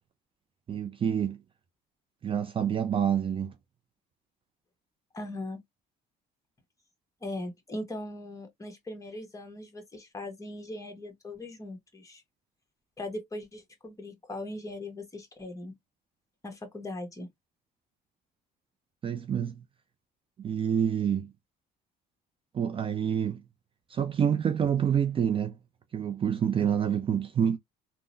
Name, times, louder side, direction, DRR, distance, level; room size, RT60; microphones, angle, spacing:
voice 1, 0.7-1.4 2.2-3.5 19.0-19.6 20.4-21.3 22.5-23.4 23.9-25.5 25.9-27.6, right 8 dB, 30° right, 0.4 m, -27 dB
voice 2, 5.1-5.6 7.2-12.2 13.0-15.8 16.4-17.3, left 1 dB, 20° left, 1.1 m, -39 dB
3.7 x 2.0 x 2.5 m
cardioid pair, 110°, 17 cm